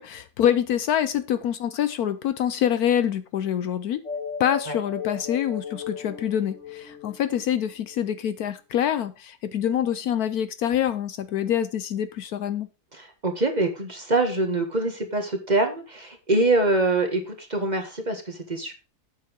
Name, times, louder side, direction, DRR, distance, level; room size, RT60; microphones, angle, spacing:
voice 1, 0.0-4.0 4.4-12.7, left 10 dB, 70° left, 1.1 m, -25 dB
sound 1, 4.0-8.0, left 5 dB, 50° left, 2.1 m, -36 dB
voice 2, 12.9-18.7, right 2 dB, 25° right, 1.6 m, -24 dB
8.3 x 6.8 x 5.1 m
omnidirectional pair, 1.8 m